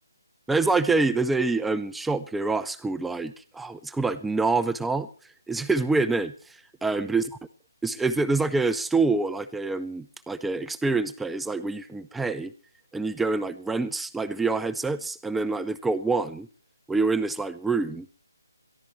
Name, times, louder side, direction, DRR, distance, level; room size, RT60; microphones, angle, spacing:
voice 1, 0.5-5.1 5.5-6.3 6.8-7.2 7.8-12.5 12.9-16.5 16.9-18.1, right 3 dB, 5° right, 11 dB, 0.6 m, -26 dB
22.5 x 14.5 x 3.2 m, 0.41 s
figure-of-eight pair, 155°, 2 cm